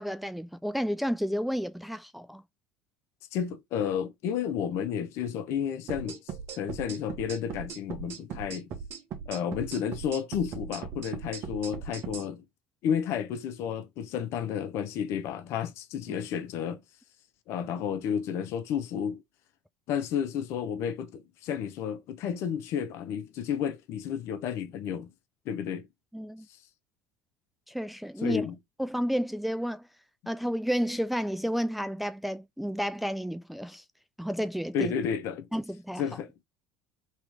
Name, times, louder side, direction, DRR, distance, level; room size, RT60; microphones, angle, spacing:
voice 1, 0.0-2.4 26.1-26.5 27.7-28.5 28.8-29.8 30.3-33.8 34.2-34.9 35.5-36.1, equal, ahead, 0.3 m, -31 dB
voice 2, 3.3-6.2 6.5-8.7 9.3-12.4 12.8-16.8 17.5-19.2 19.9-25.1 25.5-25.9 28.2-28.6 34.7-35.5 36.0-36.3, left 8 dB, 60° left, 0.8 m, -31 dB
sound 1, 5.9-12.3, right 6 dB, 55° right, 1.1 m, -39 dB
3.2 x 3.1 x 3.5 m
hypercardioid pair, 70°, 5 cm